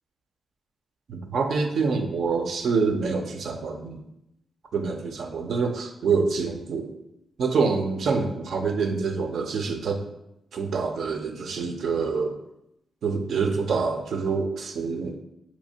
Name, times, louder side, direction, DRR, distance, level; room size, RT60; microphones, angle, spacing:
voice 1, 1.1-4.0 4.7-6.9 7.4-10.0 10.5-12.4 13.0-15.2, right 4 dB, 75° right, 4 dB, 0.5 m, -26 dB
4.3 x 2.7 x 2.7 m, 0.83 s
supercardioid pair, 50°, 0 cm